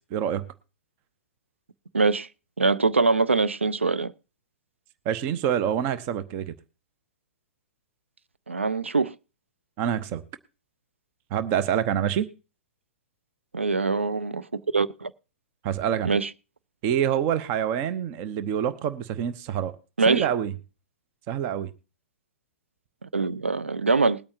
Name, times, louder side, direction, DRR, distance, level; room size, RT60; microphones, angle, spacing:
voice 1, 0.1-0.5 5.0-6.5 9.8-10.2 11.3-12.3 15.6-16.1 16.8-19.7 20.1-20.5 21.3-21.7, right 9 dB, 35° right, 0.8 m, -26 dB
voice 2, 1.9-2.3 2.6-4.1 8.5-9.1 13.5-15.1 16.1-16.3 20.0-20.3 23.0-24.2, right 4 dB, 80° right, 0.5 m, -23 dB
21.0 x 8.6 x 2.8 m
figure-of-eight pair, 110°, 7 cm